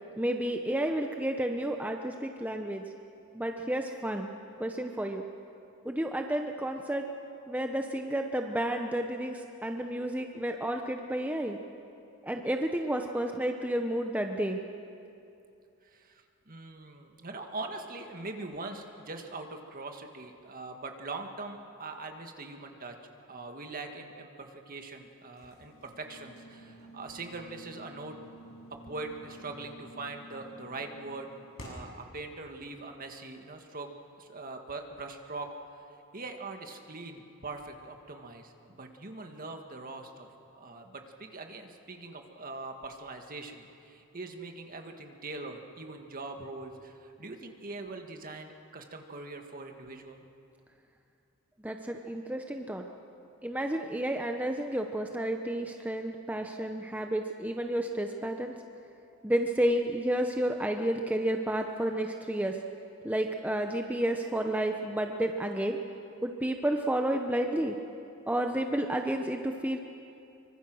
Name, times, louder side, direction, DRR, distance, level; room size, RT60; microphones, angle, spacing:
voice 1, 0.2-2.8 3.3-4.3 4.6-5.2 5.9-7.1 7.5-11.6 12.2-14.6 51.6-52.8 53.4-58.5 59.2-62.6 63.0-65.8 66.2-67.7 68.3-69.8, right 1 dB, 5° right, 3 dB, 0.8 m, -31 dB
voice 2, 15.8-23.0 23.3-28.2 28.7-31.3 31.6-33.9 34.2-35.5 36.1-40.3 40.5-50.2, right 3 dB, 40° right, 4 dB, 1.9 m, -42 dB
sound 1, 25.4-32.0, equal, 70° left, 7.6 m, -50 dB
25.0 x 24.5 x 6.3 m, 2.6 s
head